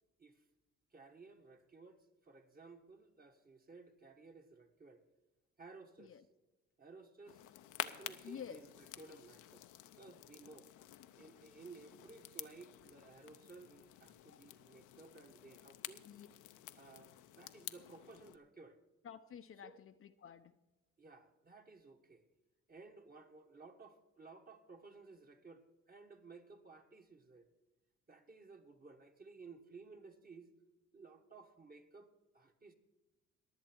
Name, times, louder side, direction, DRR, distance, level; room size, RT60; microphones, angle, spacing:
voice 1, 0.9-5.0 5.6-6.2 6.8-9.6 9.9-10.7 11.1-16.1 16.8-18.8 19.6-19.8 21.0-22.3 22.7-27.5 28.1-30.5 30.9-32.7, right 4 dB, 30° right, 1.4 m, -57 dB
sound 1, 7.3-18.4, left 13 dB, 90° left, 0.7 m, -50 dB
voice 2, 8.2-8.6 14.2-14.4 16.0-16.3 19.0-20.6, left 8 dB, 45° left, 0.6 m, -51 dB
22.0 x 7.5 x 4.5 m
cardioid pair, 90°, 30 cm